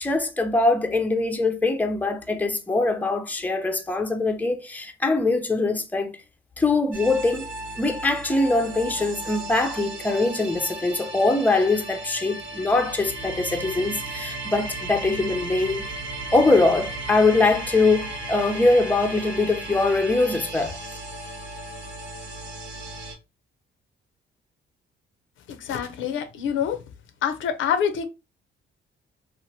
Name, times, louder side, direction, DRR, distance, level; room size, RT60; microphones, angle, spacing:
voice 1, 0.0-6.2 6.6-7.5 7.8-15.9 16.3-20.8, left 3 dB, 10° left, 0.5 m, -22 dB
sound 1, 6.9-23.1, right 2 dB, 80° right, 1.3 m, -35 dB
voice 2, 25.5-26.8 27.2-28.1, left 8 dB, 80° left, 0.5 m, -26 dB
2.9 x 2.5 x 2.6 m
cardioid pair, 90°, 20 cm